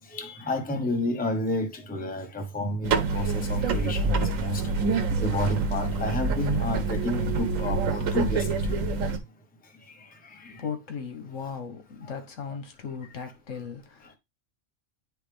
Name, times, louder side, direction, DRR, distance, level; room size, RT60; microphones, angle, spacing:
voice 1, 0.1-4.7 5.2-8.8 10.0-10.6, left 1 dB, 10° left, 0.8 m, -30 dB
sound 1, 2.8-9.2, right 4 dB, 90° right, 1.2 m, -26 dB
voice 2, 10.6-14.2, left 6 dB, 75° left, 1.5 m, -37 dB
9.8 x 3.3 x 3.4 m
omnidirectional pair, 1.3 m